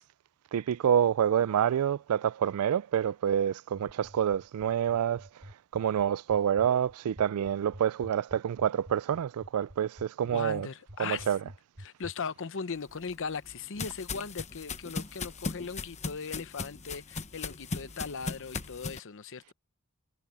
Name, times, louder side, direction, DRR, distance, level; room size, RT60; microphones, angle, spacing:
voice 1, 0.5-5.3 5.7-10.7 11.0-11.4, right 9 dB, 90° right, 0.3 m, -27 dB
sound 1, 3.7-12.1, equal, 45° right, 2.3 m, -47 dB
voice 2, 10.2-11.5 11.8-19.5, left 5 dB, 60° left, 0.8 m, -38 dB
sound 2, 12.9-19.0, left 4 dB, 30° left, 0.9 m, -38 dB
head